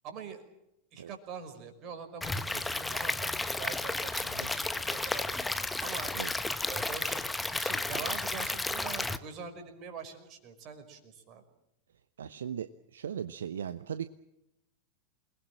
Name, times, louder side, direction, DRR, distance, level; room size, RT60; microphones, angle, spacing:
voice 1, 0.0-0.4 0.9-3.3 3.6-5.3 5.8-6.2 6.7-7.2 7.5-11.4, right 6 dB, 35° right, 6 dB, 5.3 m, -44 dB
Stream / Liquid, 2.2-9.2, left 2 dB, 5° left, 1.3 m, -33 dB
voice 2, 12.2-14.1, right 8 dB, 65° right, 12 dB, 0.9 m, -38 dB
28.5 x 20.5 x 7.5 m, 0.86 s
figure-of-eight pair, 90°, 0 cm